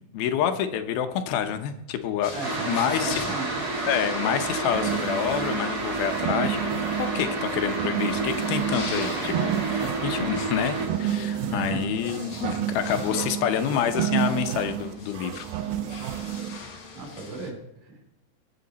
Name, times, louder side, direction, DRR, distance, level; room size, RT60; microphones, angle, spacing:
voice 1, 0.1-2.3 2.7-3.2 3.9-6.7 7.0-15.5, left 9 dB, 80° left, 8 dB, 2.7 m, -28 dB
sound 1, 2.2-17.5, left 4 dB, 45° left, 1.8 m, -42 dB
voice 2, 2.3-3.6 11.5-12.2 13.0-13.3 16.9-18.1, right 3 dB, 60° right, 1 dB, 4.2 m, -37 dB
sound 2, 2.4-10.9, right 3 dB, 35° right, 1.6 m, -30 dB
sound 3, 4.7-16.6, right 11 dB, 80° right, 2.5 m, -31 dB
23.0 x 7.7 x 4.1 m, 0.91 s
omnidirectional pair, 4.4 m